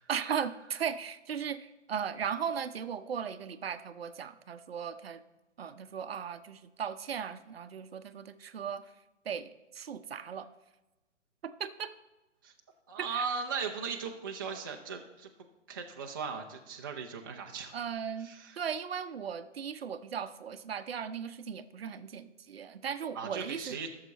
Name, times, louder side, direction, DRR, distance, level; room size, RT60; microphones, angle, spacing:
voice 1, 0.1-5.2 5.6-8.9 9.2-10.5 11.4-11.9 13.1-13.3 17.7-18.3 18.6-23.8, right 7 dB, 55° right, 11 dB, 0.7 m, -37 dB
voice 2, 12.9-15.3 15.7-17.7 18.2-18.6 23.1-23.9, right 5 dB, 20° right, 1 dB, 0.4 m, -38 dB
13.5 x 6.7 x 4.0 m, 1.1 s
figure-of-eight pair, 135°, 37 cm